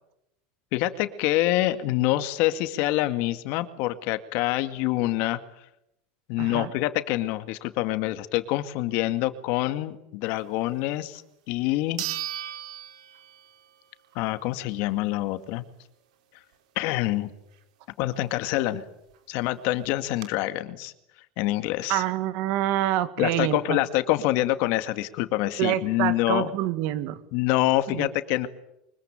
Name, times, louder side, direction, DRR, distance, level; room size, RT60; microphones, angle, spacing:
voice 1, 0.7-5.4 6.3-11.2 11.5-12.0 14.1-15.6 16.8-17.3 18.0-18.8 19.3-20.9 21.4-22.0 23.2-26.5 27.3-28.5, left 16 dB, 60° left, 11 dB, 2.1 m, -26 dB
voice 2, 6.4-6.7 21.9-23.8 25.6-27.2 27.9-28.1, right 13 dB, 60° right, 13 dB, 2.1 m, -26 dB
sound 1, 11.1-11.2 12.0-13.7 14.1-14.2 18.8-18.9 19.1-19.2 19.8-20.3, right 12 dB, 90° right, 4.2 m, -35 dB
24.5 x 22.0 x 9.1 m, 0.82 s
supercardioid pair, 140°, 4 cm